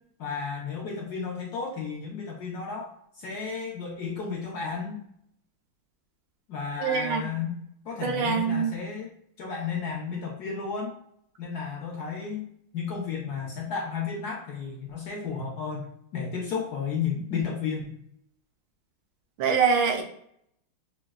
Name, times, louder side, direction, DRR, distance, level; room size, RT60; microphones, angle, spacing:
voice 1, 0.2-5.0 6.5-9.1 9.4-11.0 11.4-12.5 12.7-15.8 16.1-17.9, left 5 dB, 70° left, -1 dB, 0.9 m, -33 dB
voice 2, 6.8-7.2 8.0-8.7 19.4-20.0, right 6 dB, 70° right, 3 dB, 1.3 m, -24 dB
6.6 x 2.3 x 2.3 m, 0.70 s
omnidirectional pair, 2.3 m